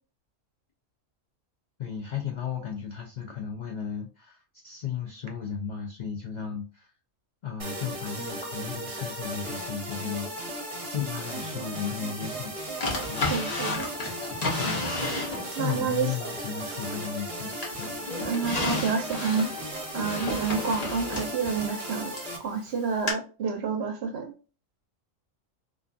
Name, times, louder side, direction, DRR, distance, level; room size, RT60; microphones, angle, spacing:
voice 1, 1.8-6.9 7.4-10.6 10.9-12.5 13.1-13.3 14.6-14.8 15.6-18.0, left 7 dB, 80° left, 0.4 m, -35 dB
sound 1, 7.6-22.4, right 1 dB, 30° right, 0.7 m, -36 dB
Drawer open or close, 12.8-15.7 16.2-17.3 17.6-22.3 23.1-23.2, left 2 dB, 35° left, 0.8 m, -32 dB
voice 2, 13.3-13.9 15.5-16.1 18.2-19.5 19.9-22.1 22.4-24.3, right 5 dB, 60° right, 0.7 m, -29 dB
2.5 x 2.3 x 2.4 m
omnidirectional pair, 1.3 m